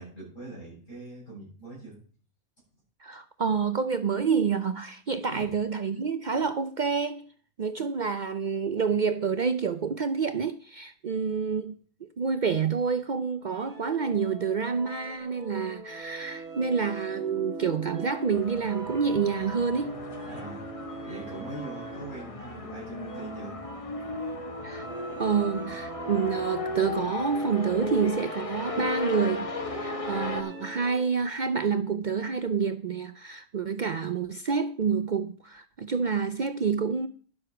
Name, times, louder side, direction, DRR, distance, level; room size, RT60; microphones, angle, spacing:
voice 1, 0.0-2.0 5.3-5.5 20.3-20.7 21.0-23.6, right 2 dB, 55° left, 8.5 m, -42 dB
voice 2, 3.0-7.2 7.6-11.8 12.2-20.0 24.6-24.9 25.2-29.5 29.8-37.1, right 6 dB, 80° right, 0.4 m, -28 dB
sound 1, 13.5-31.2, right 3 dB, 60° right, 2.4 m, -41 dB
sound 2, 18.3-30.4, left 3 dB, 25° left, 1.0 m, -36 dB
11.0 x 7.8 x 5.9 m
omnidirectional pair, 1.6 m